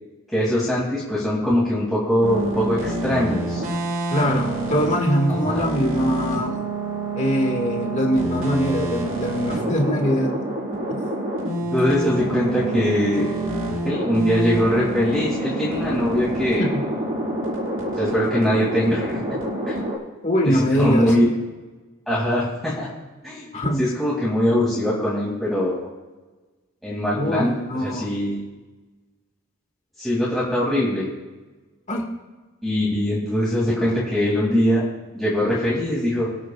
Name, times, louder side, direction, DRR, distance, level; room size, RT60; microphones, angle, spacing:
voice 1, 0.3-3.6 5.4-5.6 11.6-13.3 13.8-16.7 18.0-19.4 19.7-19.8 20.4-21.3 22.1-22.9 23.2-23.5 23.8-25.9 26.8-28.4 30.0-31.1 32.6-34.9 35.1-36.3, equal, ahead, -9 dB, 2.6 m, -22 dB
sound 1, 2.2-20.0, right 1 dB, 80° right, 4.6 m, -27 dB
voice 2, 4.1-6.6 7.1-10.4 10.9-11.0 16.6-16.7 20.2-21.1 23.5-23.8 27.2-28.1 31.9-32.0, equal, 35° left, 1 dB, 1.9 m, -22 dB
26.5 x 9.0 x 2.4 m, 1.2 s
head